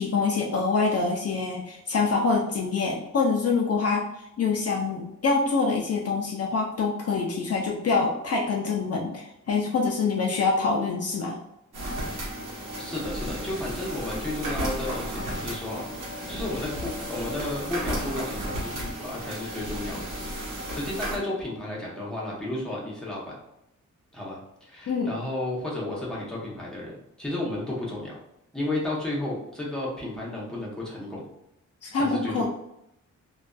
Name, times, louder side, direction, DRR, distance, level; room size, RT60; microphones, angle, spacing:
voice 1, 0.0-11.4 24.9-25.1 31.8-32.5, left 4 dB, 50° left, -1 dB, 0.4 m, -25 dB
sound 1, 11.7-21.2, equal, 85° right, 0.9 m, -33 dB
voice 2, 12.8-15.9 16.3-23.4 24.1-28.1 28.5-31.3 31.9-32.5, left 1 dB, ahead, -5 dB, 0.7 m, -33 dB
2.5 x 2.3 x 2.2 m, 0.81 s
wide cardioid pair, 110°, 31 cm